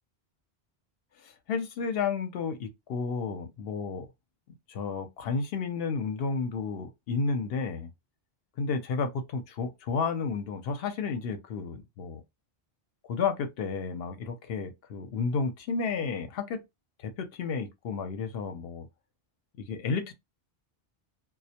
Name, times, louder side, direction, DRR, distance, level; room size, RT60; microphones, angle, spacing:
voice 1, 1.2-4.1 4.7-7.9 8.6-12.2 13.1-16.6 17.0-18.9 19.7-20.1, left 5 dB, 70° left, 0.8 m, -32 dB
2.1 x 2.1 x 2.7 m
omnidirectional pair, 1.1 m